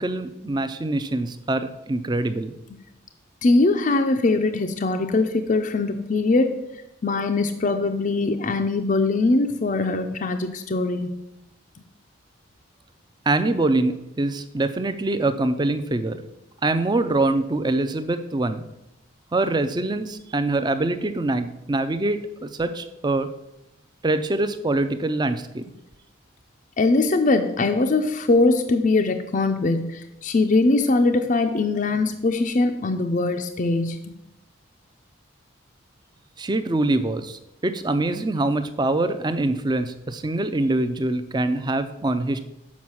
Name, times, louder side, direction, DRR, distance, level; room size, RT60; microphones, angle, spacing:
voice 1, 0.0-2.5 13.3-16.2 16.6-18.7 19.3-23.3 24.0-25.7 36.4-42.4, right 2 dB, 20° right, 11 dB, 0.4 m, -24 dB
voice 2, 3.4-6.6 7.0-11.1 26.8-34.1, left 3 dB, 40° left, 5 dB, 0.4 m, -21 dB
7.2 x 5.1 x 6.2 m, 0.88 s
head